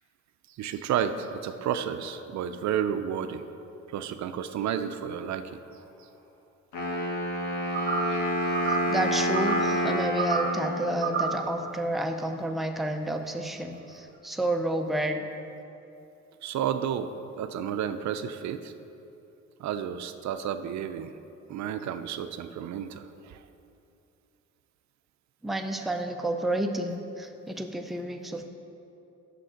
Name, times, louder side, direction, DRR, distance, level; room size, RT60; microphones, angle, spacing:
voice 1, 0.5-3.4 3.9-5.6 16.4-18.7 19.6-21.1 21.5-23.4, right 9 dB, 65° right, 9 dB, 0.5 m, -31 dB
Wind instrument woodwind instrument, 6.7-11.7, equal, 80° left, 1.5 m, -29 dB
sound 1, 7.7-8.2 8.5-9.0 9.3-9.7 10.2-10.6 11.0-11.4, right 5 dB, 40° right, 0.9 m, -30 dB
voice 2, 8.9-15.2 25.4-28.5, right 1 dB, ahead, 4 dB, 0.5 m, -30 dB
7.6 x 6.6 x 5.0 m, 2.8 s
cardioid pair, 90°, 30 cm